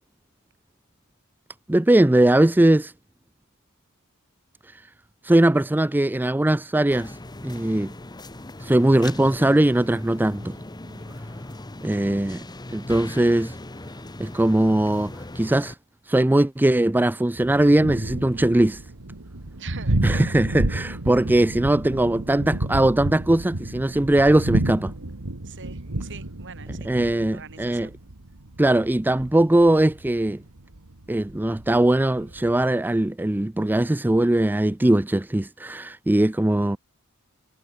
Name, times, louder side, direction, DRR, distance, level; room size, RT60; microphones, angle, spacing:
voice 1, 1.7-2.9 4.7-4.8 5.2-7.2 7.4-7.9 8.6-10.6 11.8-12.4 12.7-13.6 14.2-15.8 16.1-18.8 20.0-24.9 26.9-27.9 28.6-30.4 31.1-36.8, right 1 dB, 10° right, 0.4 m, -20 dB
sound 1, 6.9-15.7, left 1 dB, 20° left, 1.0 m, -39 dB
voice 2, 10.8-11.1 19.6-20.4 25.4-26.9 27.3-27.9, right 6 dB, 55° right, 6.4 m, -44 dB
Thunder, 17.4-32.6, right 1 dB, 85° right, 1.9 m, -31 dB
head